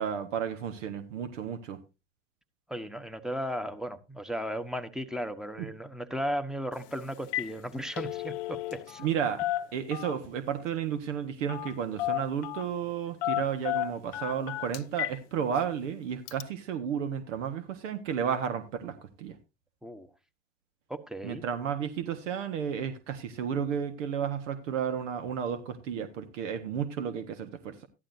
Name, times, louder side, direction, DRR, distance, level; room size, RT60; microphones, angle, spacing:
voice 1, 0.0-1.8 5.6-5.7 9.0-9.4 9.7-19.4 21.2-27.9, right 8 dB, 75° right, 1.7 m, -32 dB
voice 2, 2.7-9.0 19.8-20.1 20.9-21.4, equal, ahead, 1.1 m, -35 dB
Telephone, 6.7-6.9 7.2-7.5 7.8-9.1 9.4-10.3 11.5-11.7 12.0-12.7 13.2-15.2 15.6-15.7 16.3-16.4, left 14 dB, 60° left, 0.8 m, -33 dB
14.0 x 11.5 x 2.7 m
hypercardioid pair, 90°, 38 cm